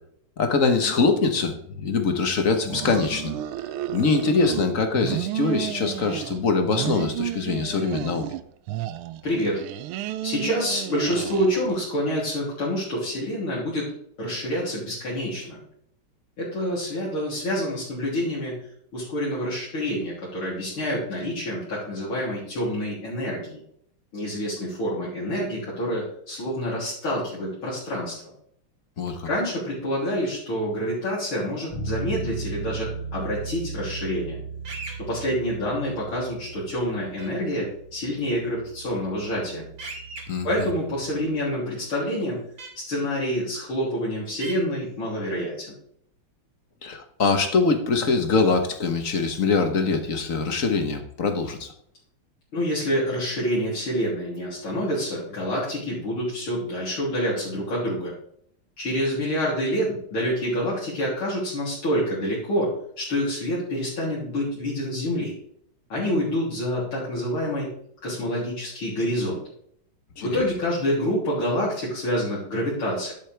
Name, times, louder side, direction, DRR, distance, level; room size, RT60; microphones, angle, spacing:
voice 1, 0.4-3.3 3.9-8.3 29.0-29.3 40.3-40.7 46.8-51.7 70.2-70.4, left 4 dB, 45° left, 6 dB, 1.4 m, -23 dB
sound 1, 2.6-4.7 4.9-6.4 6.7-8.4 8.7-11.9, right 13 dB, 80° right, 1.5 m, -32 dB
voice 2, 9.2-9.6 10.2-13.9 14.2-15.6 16.4-18.6 18.9-23.6 24.1-28.1 29.2-34.4 35.0-39.6 40.4-42.4 42.9-45.7 52.5-58.1 58.8-65.3 65.9-67.7 68.0-69.4 70.2-73.1, equal, 75° left, -8 dB, 4.0 m, -27 dB
Bass guitar, 31.7-41.5, right 3 dB, 90° left, 3.4 m, -37 dB
sound 2, 34.6-35.0 37.2-37.3 39.8-40.2 42.6-42.7 44.4-44.6, right 3 dB, 60° right, 3.1 m, -36 dB
10.5 x 8.6 x 3.4 m, 0.68 s
omnidirectional pair, 2.4 m